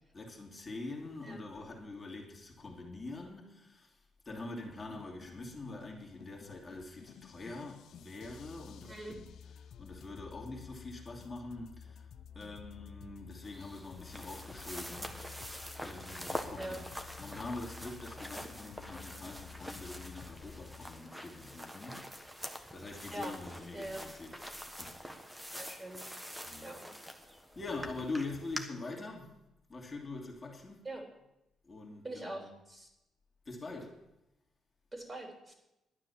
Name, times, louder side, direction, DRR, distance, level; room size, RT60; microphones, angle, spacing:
voice 1, 0.1-4.0 4.2-9.2 9.8-12.1 12.3-15.5 15.8-16.9 17.2-22.4 22.7-24.5 24.8-25.0 26.4-26.7 27.2-29.3 29.7-30.8 31.6-32.5 33.5-34.0, left 2 dB, 30° left, 2.7 m, -44 dB
sound 1, 4.4-21.0, left 7 dB, 70° left, 0.7 m, -52 dB
voice 2, 8.9-9.2 16.6-16.8 23.1-24.1 25.5-26.0 26.6-26.9 30.8-31.0 32.0-32.9 34.9-35.5, right 1 dB, 20° right, 3.9 m, -43 dB
sound 2, 13.4-28.6, equal, 5° right, 1.4 m, -45 dB
11.5 x 9.7 x 7.1 m
cardioid pair, 90°, 0 cm